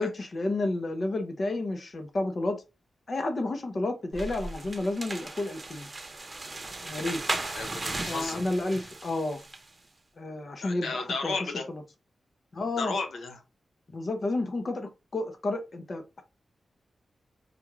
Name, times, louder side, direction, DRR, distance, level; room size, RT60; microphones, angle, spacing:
voice 1, 0.0-2.6 3.1-5.9 6.8-7.4 8.1-9.4 10.2-11.3 11.7-11.8 12.5-13.0 13.9-16.2, left 2 dB, 50° left, 0.7 m, -31 dB
sound 1, 4.1-9.7, right 2 dB, 30° right, 0.8 m, -36 dB
voice 2, 7.4-8.4 10.6-11.7 12.8-13.4, left 4 dB, 85° left, 0.9 m, -33 dB
5.1 x 2.3 x 3.0 m
cardioid pair, 80°, 0 cm